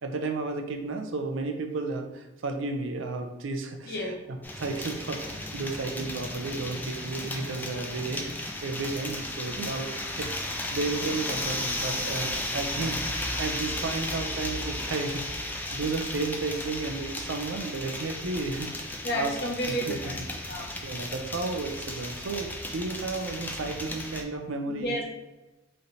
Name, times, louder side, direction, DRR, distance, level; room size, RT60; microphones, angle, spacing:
voice 1, 0.0-3.9 4.6-19.3 19.7-20.1 20.8-25.0, right 3 dB, 70° right, 5 dB, 0.5 m, -33 dB
sound 1, 4.4-24.2, left 1 dB, 10° left, 0.3 m, -34 dB
voice 2, 19.0-20.7 24.7-25.1, equal, 55° left, 0 dB, 0.8 m, -31 dB
3.2 x 2.7 x 4.0 m, 1.1 s
head